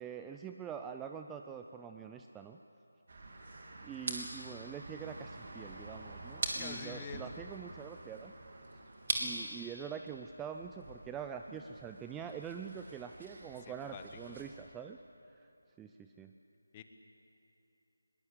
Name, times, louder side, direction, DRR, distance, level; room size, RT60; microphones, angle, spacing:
voice 1, 0.0-2.6 3.8-8.3 9.2-15.0 15.3-15.5 15.8-16.3, right 7 dB, 10° right, 5 dB, 0.4 m, -45 dB
sound 1, 3.1-14.5, right 2 dB, 50° right, 3.4 m, -43 dB
voice 2, 6.6-7.4 13.7-14.4 16.7-16.8, left 7 dB, 20° left, 7 dB, 1.1 m, -47 dB
22.0 x 20.0 x 8.2 m, 2.9 s
figure-of-eight pair, 165°, 0 cm